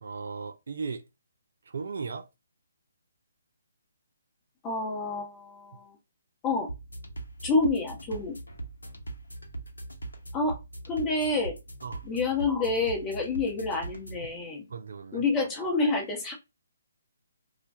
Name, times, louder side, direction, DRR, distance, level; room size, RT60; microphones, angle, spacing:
voice 1, 0.0-1.0 1.7-2.3 11.8-12.0 14.2-14.3 14.7-15.2, right 5 dB, 60° right, 0.3 m, -36 dB
voice 2, 4.6-5.9 6.4-6.7 7.4-8.4 10.3-10.6 10.9-11.6 12.0-14.6 15.1-16.3, left 3 dB, 20° left, 0.9 m, -28 dB
sound 1, 6.7-14.3, right 2 dB, 85° left, 0.8 m, -41 dB
2.2 x 2.1 x 2.6 m
figure-of-eight pair, 140°, 0 cm